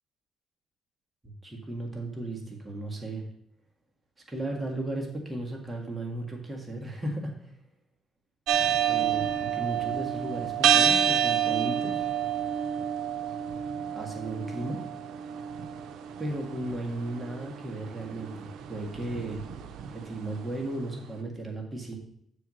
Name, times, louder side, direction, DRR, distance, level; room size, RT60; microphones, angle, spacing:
voice 1, 1.4-3.2 4.3-7.5 8.7-12.1 13.9-14.9 16.2-19.4 19.9-22.0, right 2 dB, 20° right, 0 dB, 1.7 m, -35 dB
sound 1, 8.5-20.6, right 9 dB, 80° right, 0.6 m, -29 dB
7.1 x 4.6 x 6.2 m, 0.70 s
cardioid pair, 90°, 0 cm